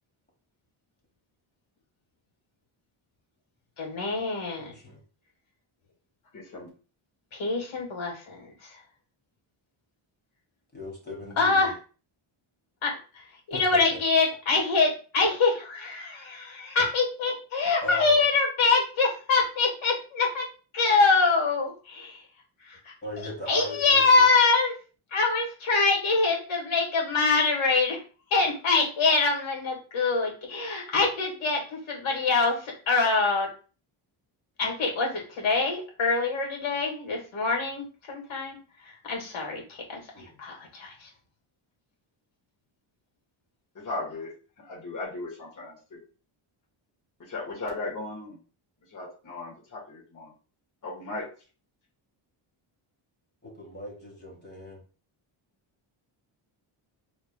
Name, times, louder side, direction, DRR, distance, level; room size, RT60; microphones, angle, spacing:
voice 1, 3.8-4.7 7.3-8.8 11.4-11.7 12.8-20.5 20.7-22.2 22.6-24.8 25.1-28.0 28.3-33.5 34.6-41.1, left 4 dB, 65° left, -1 dB, 2.0 m, -25 dB
voice 2, 4.6-5.0 10.7-11.7 13.5-13.6 13.9-14.0 17.8-18.2 23.0-24.0 40.1-40.4 53.4-54.8, equal, 20° left, -1 dB, 1.7 m, -38 dB
voice 3, 6.3-6.7 43.8-44.3 44.7-46.0 47.3-48.4 48.9-50.3 50.8-51.3, left 2 dB, 35° left, -4 dB, 1.6 m, -36 dB
4.4 x 3.4 x 2.3 m, 0.36 s
cardioid pair, 115°, 50 cm